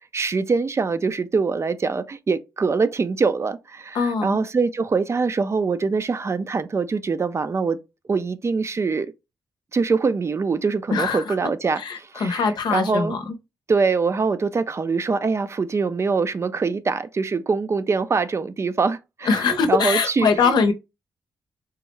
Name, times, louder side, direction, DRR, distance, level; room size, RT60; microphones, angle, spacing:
voice 1, 0.1-7.8 8.1-9.1 9.7-13.2 13.7-20.5, right 4 dB, 40° right, 0.4 m, -23 dB
voice 2, 3.9-4.4 10.9-11.4 11.7-13.3 19.2-20.7, left 5 dB, 75° left, 0.7 m, -22 dB
3.6 x 2.1 x 3.0 m
cardioid pair, 60°, 7 cm